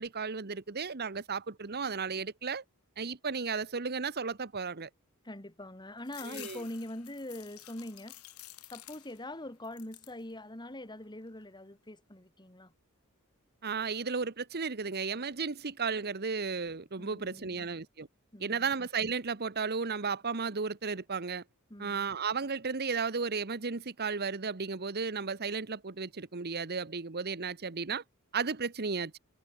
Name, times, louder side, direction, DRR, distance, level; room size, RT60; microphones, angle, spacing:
voice 1, 0.0-2.6 3.0-4.9 6.2-6.6 13.6-18.1 18.4-21.4 21.8-28.0 28.3-29.2, right 5 dB, 45° right, 1.1 m, -34 dB
voice 2, 5.2-8.2 8.7-12.7 17.0-17.7 18.3-18.7 21.7-22.1, left 1 dB, 20° left, 2.9 m, -43 dB
sound 1, 6.1-9.3 9.6-10.2 10.7-11.4, left 15 dB, 75° left, 2.1 m, -51 dB
head